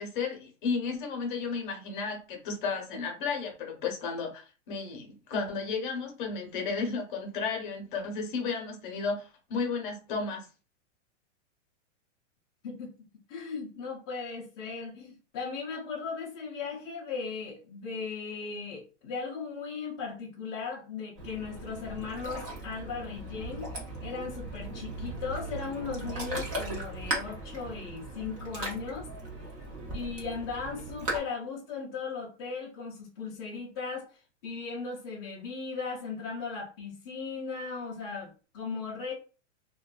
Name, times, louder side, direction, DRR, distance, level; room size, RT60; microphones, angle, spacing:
voice 1, 0.0-10.5, left 4 dB, 40° left, 2 dB, 0.8 m, -33 dB
voice 2, 12.6-12.9 13.3-23.7 24.0-29.1 29.9-34.1 34.4-39.1, left 5 dB, 20° left, -6 dB, 0.4 m, -37 dB
Ocean, 21.2-31.2, right 2 dB, 30° right, 0.6 m, -38 dB
2.5 x 2.2 x 2.3 m, 0.34 s
supercardioid pair, 165°, 37 cm